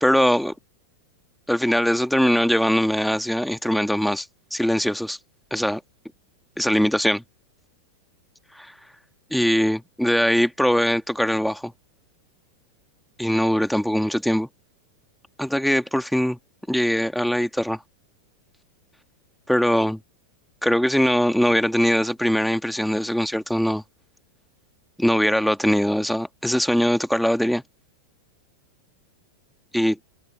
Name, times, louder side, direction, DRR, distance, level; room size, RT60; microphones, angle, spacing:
voice 1, 0.0-0.5 1.5-5.2 5.5-5.8 6.6-7.2 8.6-8.7 9.3-11.7 13.2-14.5 15.4-16.4 16.7-17.8 19.5-20.0 20.6-23.8 25.0-27.6 29.7-30.0, equal, ahead, 2.2 m, -21 dB
figure-of-eight pair, 90°, 0 cm